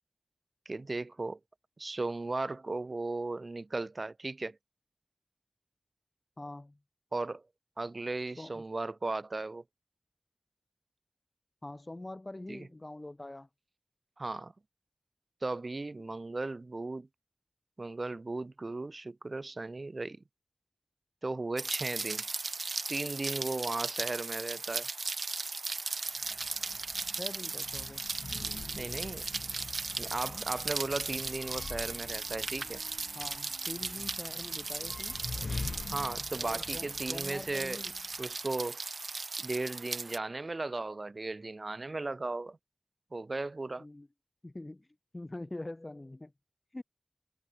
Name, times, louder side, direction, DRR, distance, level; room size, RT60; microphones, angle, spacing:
voice 1, 0.6-1.4 1.8-4.6 7.1-7.4 7.8-9.6 12.5-12.7 14.2-14.5 15.4-17.1 17.8-20.2 21.2-22.2 22.9-24.9 28.7-29.3 30.0-32.8 35.9-37.8 38.2-38.8 39.4-42.6 43.1-43.8, right 2 dB, 60° right, 1.4 m, -36 dB
voice 2, 6.4-6.8 8.4-8.6 11.6-13.5 27.2-28.0 33.1-35.2 36.4-38.0 43.8-44.1 44.4-44.9 45.1-46.3 46.7-46.8, left 2 dB, 35° left, 1.1 m, -44 dB
Rain, 21.6-40.2, right 3 dB, 90° right, 0.4 m, -37 dB
sound 1, 26.2-38.3, left 3 dB, 85° left, 2.8 m, -45 dB
Wind instrument woodwind instrument, 29.1-37.0, right 1 dB, 20° right, 7.8 m, -61 dB
wide cardioid pair, 50°, 0 cm